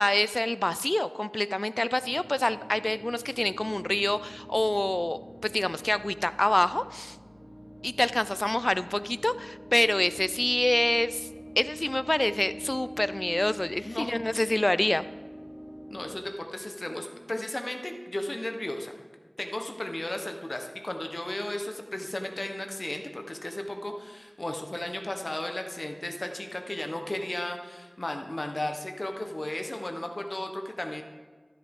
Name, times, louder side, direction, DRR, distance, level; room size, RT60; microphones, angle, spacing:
voice 1, 0.0-7.2 7.8-11.3 11.6-15.0, left 1 dB, 35° left, 15 dB, 0.3 m, -26 dB
sound 1, 1.9-16.2, equal, 35° right, 2.1 m, -46 dB
voice 2, 15.9-18.9 19.4-31.0, left 1 dB, 55° left, 4 dB, 0.9 m, -34 dB
12.5 x 7.8 x 3.6 m, 1.4 s
wide cardioid pair, 45°, 0 cm